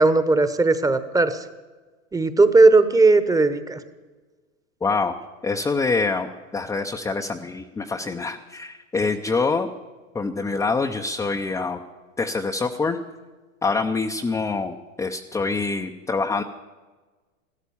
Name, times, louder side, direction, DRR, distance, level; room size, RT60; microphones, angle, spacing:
voice 1, 0.0-1.4 2.1-3.8, right 3 dB, 10° right, 12 dB, 1.0 m, -17 dB
voice 2, 4.8-5.2 5.4-9.7 10.1-11.8 12.2-13.0 13.6-16.4, left 4 dB, 5° left, 3 dB, 0.6 m, -25 dB
15.5 x 13.0 x 7.0 m, 1.3 s
hypercardioid pair, 120°, 40 cm